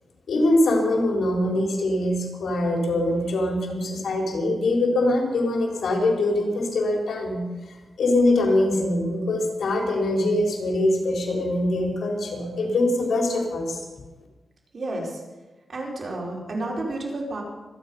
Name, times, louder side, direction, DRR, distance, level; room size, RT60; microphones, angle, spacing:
voice 1, 0.3-7.4 8.0-13.8, left 1 dB, 80° left, 1 dB, 3.9 m, -23 dB
voice 2, 14.7-15.2 15.7-17.4, right 2 dB, 50° right, -2 dB, 4.8 m, -31 dB
25.0 x 9.7 x 5.5 m, 1.2 s
wide cardioid pair, 115°, 0 cm